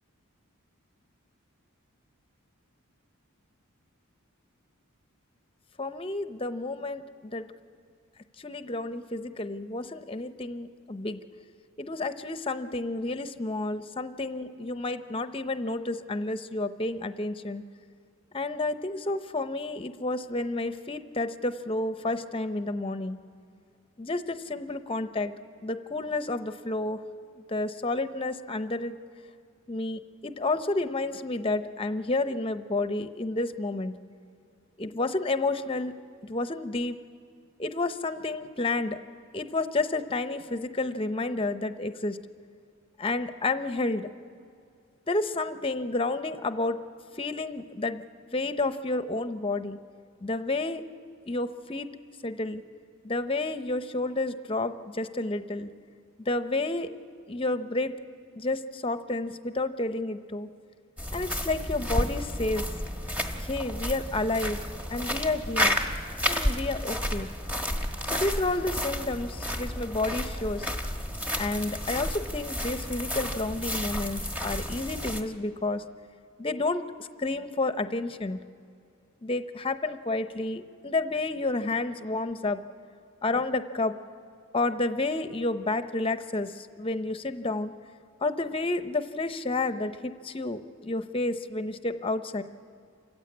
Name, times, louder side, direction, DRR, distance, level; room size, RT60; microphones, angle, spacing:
voice 1, 5.8-7.5 8.4-11.2 11.8-17.6 18.3-23.2 24.0-25.3 25.6-27.0 27.3-29.0 29.7-34.0 34.8-35.9 36.2-37.0 37.6-39.0 39.3-42.2 43.0-44.1 45.1-46.8 47.2-48.0 48.3-49.8 50.2-50.8 51.3-51.9 52.2-52.6 53.0-55.7 56.3-56.9 57.3-57.9 58.4-60.5 61.1-62.7 63.4-64.6 64.9-65.8 66.3-67.3 68.1-70.7 71.4-75.8 76.4-78.4 79.2-82.6 83.2-84.0 84.5-87.7 88.2-92.4, left 2 dB, 25° left, 10 dB, 0.7 m, -30 dB
sound 1, 61.0-75.2, equal, 5° right, 1.2 m, -31 dB
28.0 x 15.5 x 8.5 m, 2.3 s
head